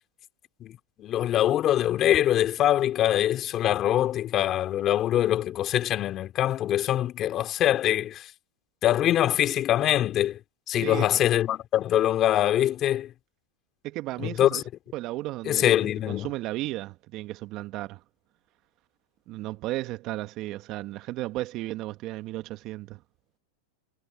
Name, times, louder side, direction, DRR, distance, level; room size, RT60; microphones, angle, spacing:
voice 1, 0.6-8.3 8.8-10.4 10.7-13.1 14.2-14.6 15.4-16.3, left 12 dB, 35° left, 3.1 m, -24 dB
voice 2, 13.8-14.6 14.9-15.6 16.1-18.0 19.3-23.0, right 17 dB, 45° right, 1.6 m, -34 dB
hypercardioid pair, 110°, 0 cm